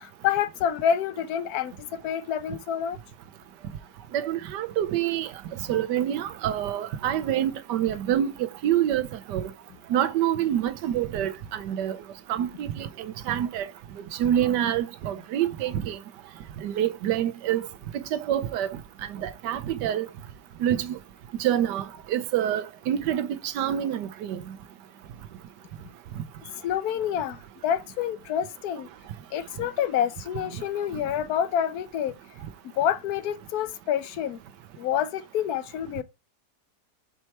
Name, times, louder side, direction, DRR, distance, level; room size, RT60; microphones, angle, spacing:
voice 1, 0.0-3.0 26.6-28.9 29.3-32.1 32.6-34.4 34.8-36.0, left 9 dB, 70° left, 1.1 m, -28 dB
voice 2, 4.1-5.3 5.7-9.5 9.9-12.0 12.3-13.7 14.1-16.0 16.6-17.7 17.9-18.8 19.1-20.1 20.6-21.0 21.4-24.4, right 11 dB, 85° right, 1.3 m, -27 dB
5.4 x 4.6 x 4.3 m
omnidirectional pair, 1.8 m